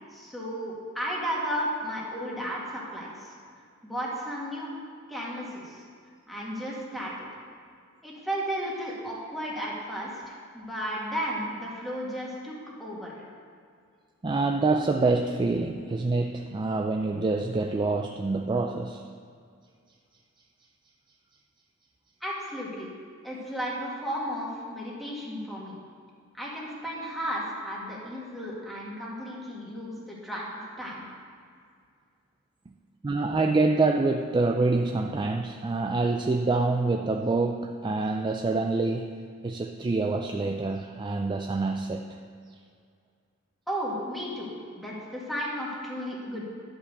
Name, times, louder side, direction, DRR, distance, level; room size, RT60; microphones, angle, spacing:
voice 1, 0.1-3.3 3.8-4.7 5.1-5.8 6.3-7.3 8.0-12.5 12.8-13.2 22.2-22.9 23.2-25.8 26.3-31.0 43.7-46.4, equal, ahead, -5 dB, 2.0 m, -34 dB
voice 2, 14.2-19.0 27.8-27.9 33.0-39.1 39.4-42.0, right 3 dB, 20° right, 4 dB, 0.3 m, -26 dB
11.0 x 5.3 x 6.7 m, 2.2 s
head